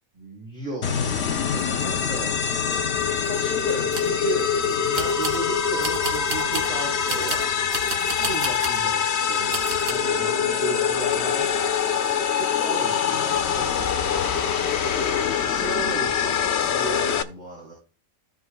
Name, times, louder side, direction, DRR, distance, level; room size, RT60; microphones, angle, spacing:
voice 1, 0.1-7.5 8.2-11.6 12.1-14.2 15.4-17.7, right 4 dB, 30° right, -5 dB, 4.8 m, -36 dB
sound 1, 0.8-17.2, left 7 dB, 55° left, 0.9 m, -24 dB
sound 2, 3.6-4.2 4.9-5.4 5.8-6.7 7.1-8.8 9.5-9.9, right 2 dB, 75° right, 2.1 m, -32 dB
15.5 x 5.7 x 2.3 m, 0.35 s
omnidirectional pair, 1.5 m